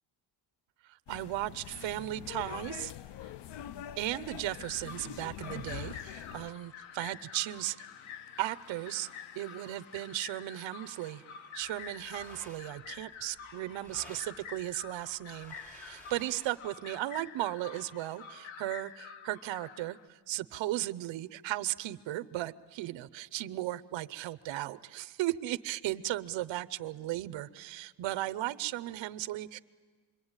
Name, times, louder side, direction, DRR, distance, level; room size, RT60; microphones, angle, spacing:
voice 1, 0.8-2.9 4.0-7.9 8.4-9.1 9.3-11.2 11.5-29.6, right 15 dB, 75° right, 14 dB, 0.8 m, -36 dB
sound 1, 1.1-6.5, left 11 dB, 65° left, 0.7 m, -44 dB
sound 2, 4.5-20.1, left 7 dB, 90° left, 1.5 m, -48 dB
sound 3, 11.6-16.7, right 1 dB, 5° left, 3.1 m, -56 dB
27.0 x 22.0 x 8.9 m, 1.5 s
cardioid pair, 140°, 46 cm